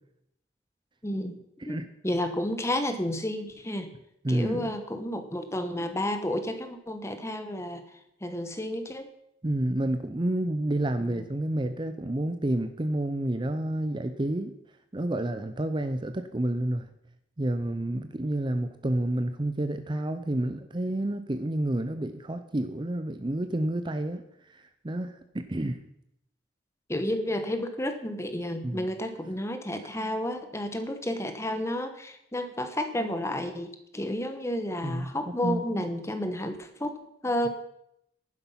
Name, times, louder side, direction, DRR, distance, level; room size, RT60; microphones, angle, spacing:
voice 1, 1.0-1.4 1.6-3.9 4.3-7.8 8.2-9.1 11.1-11.3 26.9-37.5, left 1 dB, 15° left, 8 dB, 1.0 m, -31 dB
voice 2, 4.2-4.8 9.4-14.6 14.9-16.9 17.4-25.8 28.6-28.9 34.8-35.1 35.4-35.8, right 1 dB, 25° right, 9 dB, 0.6 m, -29 dB
11.5 x 9.9 x 5.7 m, 0.78 s
head